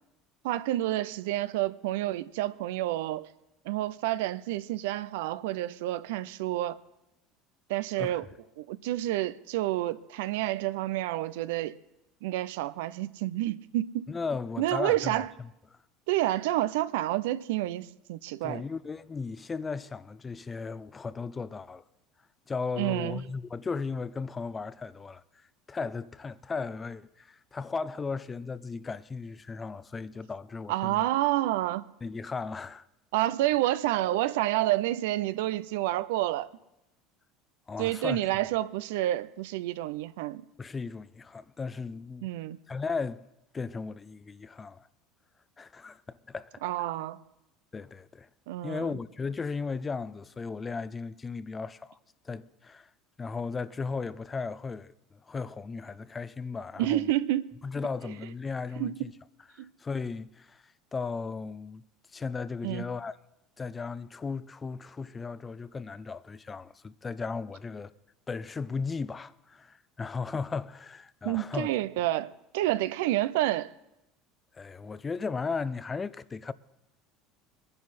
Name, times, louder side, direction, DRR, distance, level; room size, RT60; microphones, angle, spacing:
voice 1, 0.4-3.3 3.7-6.8 7.7-8.3 8.6-11.8 12.2-14.1 14.6-15.3 16.1-18.6 22.8-23.2 30.7-31.9 33.1-36.5 37.8-40.4 42.2-42.6 46.6-47.2 48.5-49.0 56.8-57.5 58.8-58.9 59.6-59.7 62.6-62.9 71.2-73.7, right 15 dB, 80° right, 0.5 m, -29 dB
voice 2, 14.1-15.2 18.4-21.8 22.5-31.1 32.0-32.8 37.7-38.2 40.6-42.3 42.7-43.2 43.5-44.9 45.6-46.6 47.7-48.3 48.6-52.0 52.2-52.9 53.2-57.1 57.6-59.1 59.5-61.8 62.1-63.2 63.6-67.9 68.3-71.7 74.5-76.5, left 4 dB, 25° left, 0.5 m, -36 dB
21.0 x 10.5 x 4.2 m
hypercardioid pair, 85°, 0 cm